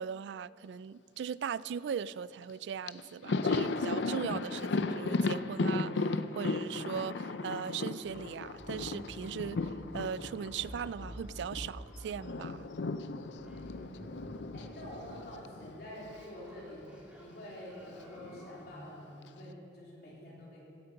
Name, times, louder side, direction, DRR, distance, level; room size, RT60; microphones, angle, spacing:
voice 1, 0.0-12.7, right 7 dB, 75° right, 19 dB, 0.3 m, -39 dB
Thunder, 2.5-2.6 2.9-11.7 12.0-16.3 16.5-16.7 17.9-18.6, left 3 dB, 80° left, 0.5 m, -35 dB
sound 1, 7.8-18.6, equal, 5° right, 2.3 m, -51 dB
voice 2, 13.8-16.9 17.2-20.6, equal, 60° left, -5 dB, 3.7 m, -48 dB
16.0 x 9.1 x 5.8 m, 2.6 s
head